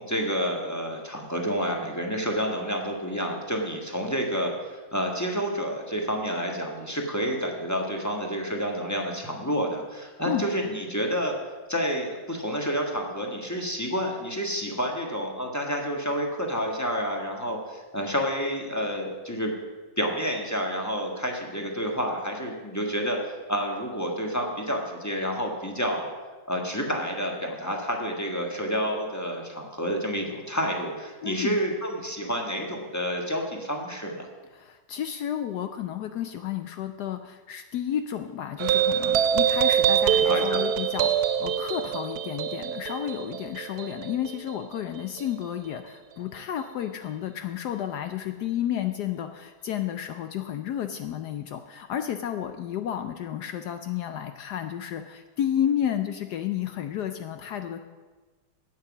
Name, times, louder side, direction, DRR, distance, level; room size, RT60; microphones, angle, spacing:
voice 1, 0.0-11.3 11.7-19.5 20.0-26.1 26.5-34.3 40.2-40.6, equal, 10° left, 1 dB, 1.1 m, -29 dB
voice 2, 31.2-31.6 34.5-57.8, left 10 dB, 75° left, 8 dB, 0.9 m, -31 dB
sound 1, 38.6-45.4, right 9 dB, 75° right, 0.9 m, -25 dB
9.4 x 8.7 x 7.2 m, 1.3 s
omnidirectional pair, 2.3 m